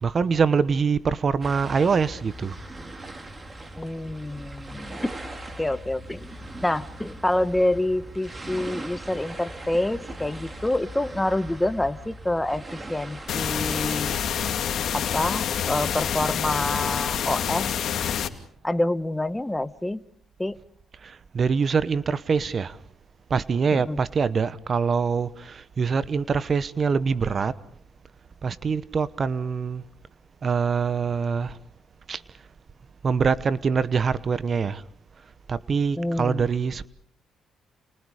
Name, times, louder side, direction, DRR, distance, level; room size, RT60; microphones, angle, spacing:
voice 1, 0.0-2.6 21.0-22.8 23.3-27.5 28.4-29.8 30.4-31.6 32.1-32.2 33.0-34.8 35.5-36.9, right 5 dB, 45° right, 1.0 m, -24 dB
sound 1, 1.4-14.5, right 1 dB, 25° right, 3.6 m, -40 dB
voice 2, 3.8-5.1 5.6-6.3 6.6-14.1 14.9-17.7 18.6-20.0 20.4-20.6 23.7-24.0 36.0-36.5, left 1 dB, 10° left, 1.2 m, -27 dB
sound 2, 13.3-18.3, left 8 dB, 65° left, 2.5 m, -27 dB
30.0 x 29.5 x 5.0 m
cardioid pair, 90°, 0 cm